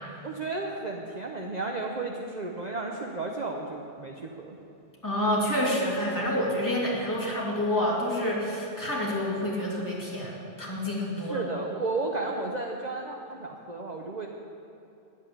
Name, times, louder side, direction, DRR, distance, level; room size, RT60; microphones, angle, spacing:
voice 1, 0.2-4.6 11.2-14.3, right 3 dB, 40° right, 1 dB, 0.9 m, -33 dB
voice 2, 5.0-11.5, left 1 dB, 15° left, -6 dB, 2.9 m, -28 dB
11.0 x 8.5 x 9.8 m, 2.8 s
omnidirectional pair, 1.2 m